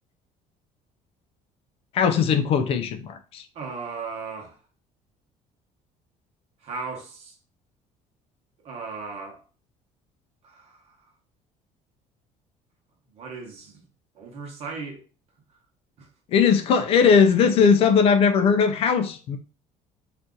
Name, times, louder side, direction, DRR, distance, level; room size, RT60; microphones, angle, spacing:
voice 1, 1.9-3.4 16.3-19.4, left 6 dB, 45° left, 0.3 m, -19 dB
voice 2, 3.5-4.6 6.6-7.3 8.6-9.4 10.4-11.0 13.1-13.8 14.1-15.0 16.0-16.1, right 4 dB, 50° right, 1.0 m, -36 dB
2.7 x 2.5 x 3.7 m
cardioid pair, 170°, 14 cm